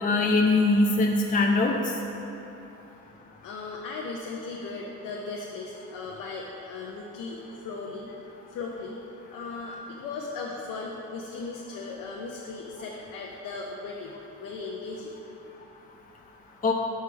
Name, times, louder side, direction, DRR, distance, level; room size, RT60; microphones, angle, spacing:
voice 1, 0.0-1.7 16.6-16.7, left 2 dB, 25° left, 0 dB, 0.6 m, -22 dB
voice 2, 3.4-8.1 8.5-9.0 9.3-15.2, left 3 dB, 85° left, -2 dB, 0.7 m, -37 dB
5.5 x 4.8 x 6.0 m, 3.0 s
cardioid pair, 70°, 33 cm